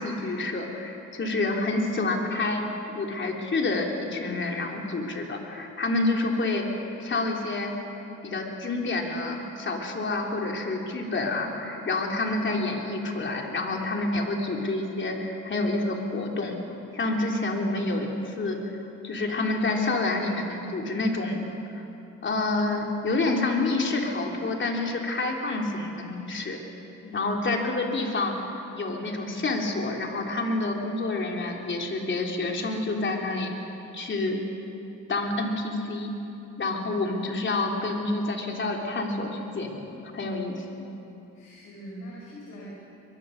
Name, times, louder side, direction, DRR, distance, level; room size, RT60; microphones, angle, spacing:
voice 1, 0.0-2.6 2.9-6.6 7.0-7.7 8.2-16.6 16.9-18.8 19.0-21.4 21.8-21.9 22.2-26.6 27.1-33.5 33.9-34.4 35.1-36.1 36.6-40.8, left 2 dB, 40° left, 1 dB, 3.5 m, -28 dB
voice 2, 27.0-27.3 41.3-42.7, equal, 85° left, -5 dB, 5.4 m, -41 dB
23.0 x 22.0 x 6.6 m, 2.9 s
cardioid pair, 90°, 30 cm